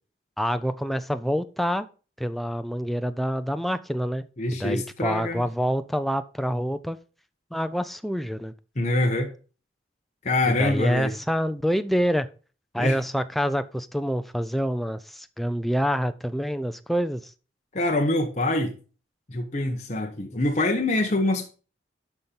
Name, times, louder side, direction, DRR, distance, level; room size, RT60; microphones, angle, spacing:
voice 1, 0.4-1.9 2.2-4.3 4.5-7.0 7.5-8.5 10.5-12.3 12.7-17.3, equal, ahead, 0.5 m, -27 dB
voice 2, 4.4-5.4 8.8-9.3 10.2-11.1 12.8-13.0 17.7-18.8 19.3-21.5, left 2 dB, 40° left, 1.1 m, -25 dB
12.0 x 4.4 x 5.4 m
head